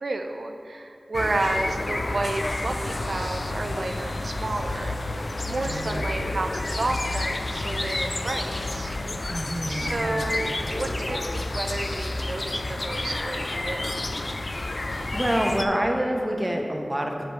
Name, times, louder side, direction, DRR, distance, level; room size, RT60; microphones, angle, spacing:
voice 1, 0.0-9.0 9.7-14.2, right 2 dB, 80° right, 4 dB, 0.3 m, -31 dB
sound 1, 1.1-15.7, left 2 dB, 55° left, 0.3 m, -30 dB
voice 2, 5.6-6.0 9.3-10.2 15.1-17.3, equal, 20° right, 1 dB, 0.7 m, -27 dB
4.9 x 4.7 x 5.5 m, 2.8 s
wide cardioid pair, 60°, 0 cm